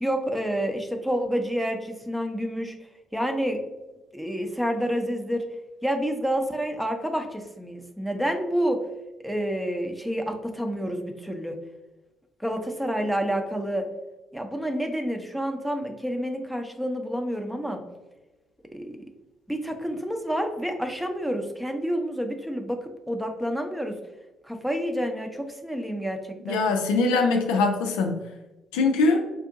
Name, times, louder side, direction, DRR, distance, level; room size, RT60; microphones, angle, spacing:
voice 1, 0.0-2.7 3.1-3.6 4.1-5.4 5.8-8.8 9.2-11.6 12.4-13.8 14.3-17.8 18.7-19.0 19.5-22.8 23.1-24.0 24.5-26.2 26.5-26.6, equal, 5° right, 4 dB, 0.7 m, -28 dB
voice 2, 26.5-28.2 28.7-29.2, left 3 dB, 75° left, 3 dB, 0.4 m, -22 dB
4.5 x 2.6 x 2.5 m, 1.1 s
hypercardioid pair, 45°, 0 cm